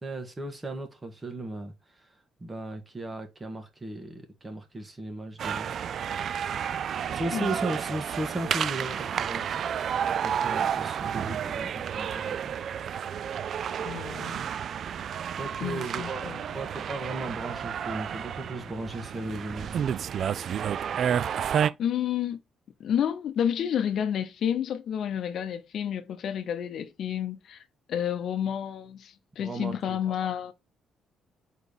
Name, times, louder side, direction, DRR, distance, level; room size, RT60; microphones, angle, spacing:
voice 1, 0.0-1.7 2.4-5.7 7.1-9.4 10.2-12.6 15.4-19.9 29.4-30.0, right 2 dB, 25° right, 1.8 m, -36 dB
sound 1, 5.4-21.7, right 8 dB, 60° right, 0.3 m, -31 dB
voice 2, 13.8-14.4 15.6-16.4 21.8-22.4 22.8-27.6 27.9-30.5, left 9 dB, 65° left, 0.7 m, -30 dB
4.6 x 4.0 x 5.2 m
cardioid pair, 90°, 0 cm